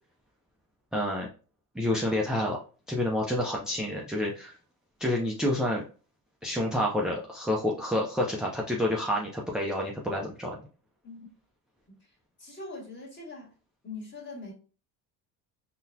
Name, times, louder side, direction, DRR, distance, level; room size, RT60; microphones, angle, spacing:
voice 1, 0.9-1.3 1.7-2.6 2.9-4.6 5.0-5.8 6.4-10.6, left 1 dB, ahead, 0.4 m, -28 dB
voice 2, 11.9-13.5 13.8-14.5, left 3 dB, 25° left, 1.7 m, -43 dB
3.8 x 2.3 x 2.7 m
supercardioid pair, 80°, 44 cm